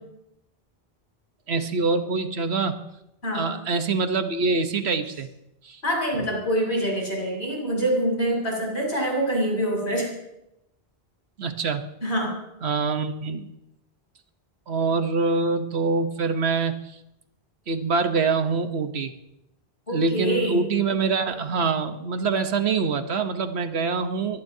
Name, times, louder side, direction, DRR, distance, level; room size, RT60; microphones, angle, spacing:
voice 1, 1.5-2.8 3.3-5.3 5.6-5.8 11.4-11.9 12.6-13.5 14.7-16.8 17.7-19.1 19.9-24.4, right 4 dB, 80° right, 8 dB, 1.3 m, -25 dB
voice 2, 3.2-3.5 5.8-10.1 12.0-12.3 19.9-20.7, right 1 dB, 90° left, -1 dB, 6.8 m, -25 dB
23.5 x 17.5 x 2.8 m, 0.87 s
omnidirectional pair, 1.1 m